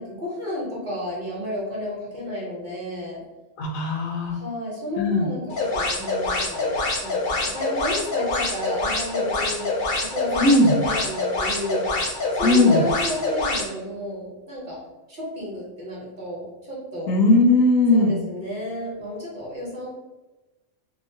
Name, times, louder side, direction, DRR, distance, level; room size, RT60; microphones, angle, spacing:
voice 1, 0.0-3.2 4.3-10.5 10.8-11.8 12.3-14.8 15.1-17.1 17.9-19.9, equal, 45° right, -6 dB, 0.9 m, -32 dB
voice 2, 3.6-4.3 5.0-5.2 10.4-10.7 12.4-12.8 17.1-18.1, left 2 dB, 85° left, 1 dB, 1.0 m, -18 dB
sound 1, 5.5-13.7, left 2 dB, 60° left, 0.5 m, -26 dB
2.9 x 2.0 x 2.5 m, 1.1 s
omnidirectional pair, 1.3 m